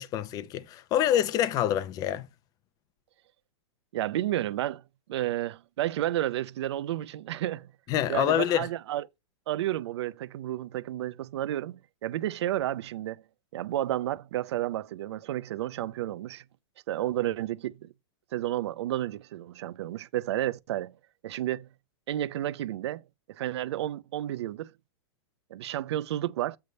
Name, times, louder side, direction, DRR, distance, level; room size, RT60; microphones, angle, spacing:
voice 1, 0.0-2.3 7.9-8.7, left 11 dB, 25° left, 0.6 m, -26 dB
voice 2, 3.9-4.8 5.1-7.7 8.1-9.0 9.5-13.2 13.5-16.4 16.9-17.9 18.3-20.9 21.2-21.7 22.1-23.0 23.3-24.7 25.5-26.6, right 13 dB, 70° right, 0.5 m, -31 dB
8.0 x 3.4 x 5.2 m
supercardioid pair, 150°, 15 cm